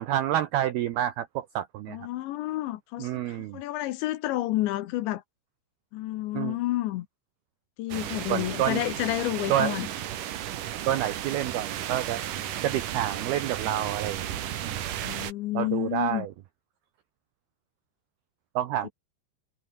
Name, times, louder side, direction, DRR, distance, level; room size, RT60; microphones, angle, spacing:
voice 1, 0.0-2.0 3.0-3.6 6.3-6.6 8.3-8.8 9.5-9.8 10.9-12.2 12.6-14.8 15.5-16.3 18.6-18.9, right 12 dB, 80° right, 2.3 m, -28 dB
voice 2, 1.9-5.2 5.9-7.1 7.8-9.9 15.0-16.3 18.8-18.9, left 16 dB, 75° left, 3.0 m, -30 dB
sound 1, 7.9-15.3, right 11 dB, 60° right, 2.3 m, -34 dB
omnidirectional pair, 5.8 m